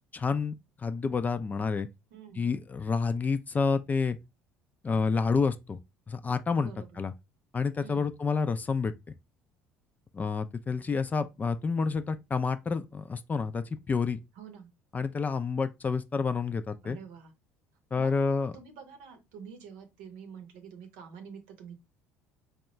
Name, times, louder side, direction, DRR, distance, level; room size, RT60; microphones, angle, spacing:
voice 1, 0.1-0.5 0.8-1.9 2.4-4.2 4.8-5.8 6.1-6.7 7.0-7.1 7.5-8.9 10.1-14.2 14.9-17.0 17.9-18.5, left 5 dB, 25° left, 0.4 m, -29 dB
voice 2, 2.1-2.5 6.6-7.0 7.8-8.1 14.3-14.7 16.8-17.3 18.0-18.1 18.5-21.8, right 7 dB, 65° right, 0.8 m, -47 dB
4.3 x 2.3 x 3.1 m
figure-of-eight pair, 60°, 7 cm